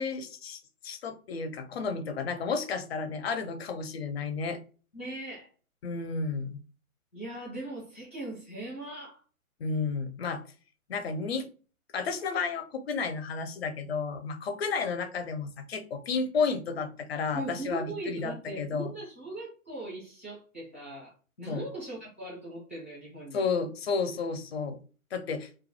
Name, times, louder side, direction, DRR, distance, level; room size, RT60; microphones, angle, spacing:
voice 1, 0.0-4.6 5.8-6.6 9.6-10.4 10.9-11.5 11.9-18.9 21.5-21.7 23.3-24.8 25.1-25.5, left 5 dB, 50° left, 8 dB, 0.5 m, -32 dB
voice 2, 4.9-5.5 7.1-9.2 17.3-21.1 21.4-23.5, right 2 dB, 10° right, -6 dB, 0.4 m, -39 dB
2.2 x 2.1 x 2.8 m, 0.38 s
figure-of-eight pair, 125°, 42 cm